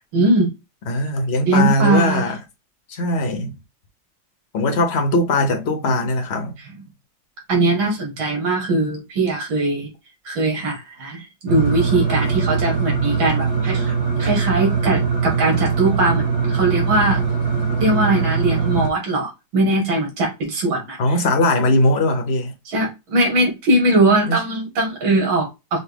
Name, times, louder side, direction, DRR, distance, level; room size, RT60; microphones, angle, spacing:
voice 1, 0.1-0.6 1.5-2.3 6.7-6.8 7.5-9.9 10.3-17.2 17.8-21.0 22.7-25.8, right 2 dB, 80° right, 2.3 m, -20 dB
voice 2, 0.9-2.4 2.9-3.5 4.5-6.5 21.0-22.5 24.3-24.4, left 1 dB, 55° left, 0.7 m, -20 dB
sound 1, 11.5-18.9, right 5 dB, 45° right, 1.1 m, -21 dB
5.5 x 2.3 x 3.4 m
omnidirectional pair, 2.2 m